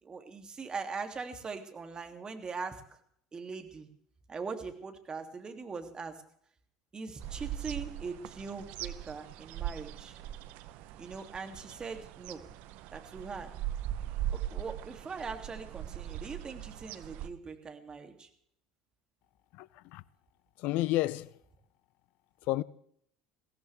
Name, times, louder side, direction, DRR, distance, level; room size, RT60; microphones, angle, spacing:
voice 1, 0.0-2.8 3.3-3.9 4.3-6.2 6.9-10.2 11.0-12.5 12.9-13.5 14.5-18.3, right 4 dB, 30° right, 2.9 m, -41 dB
sound 1, 7.2-17.3, right 12 dB, 65° right, 1.0 m, -40 dB
voice 2, 19.5-20.0 20.6-21.3 22.4-22.6, left 17 dB, 60° left, 0.6 m, -31 dB
22.5 x 16.5 x 3.6 m
hypercardioid pair, 75°, 3 cm